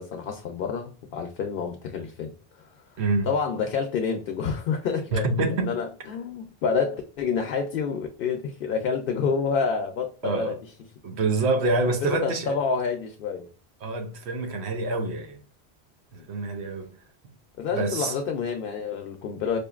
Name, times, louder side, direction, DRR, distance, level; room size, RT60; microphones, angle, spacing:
voice 1, 0.0-2.7 3.3-10.6 12.0-13.5 16.1-16.3 17.6-19.6, left 5 dB, 65° left, 0.7 m, -28 dB
voice 2, 3.0-3.3 5.1-5.8 10.2-10.6 11.0-12.5 13.8-15.4 16.3-16.9 17.7-18.1, right 3 dB, 90° right, 1.0 m, -26 dB
4.9 x 2.6 x 2.3 m
omnidirectional pair, 1.1 m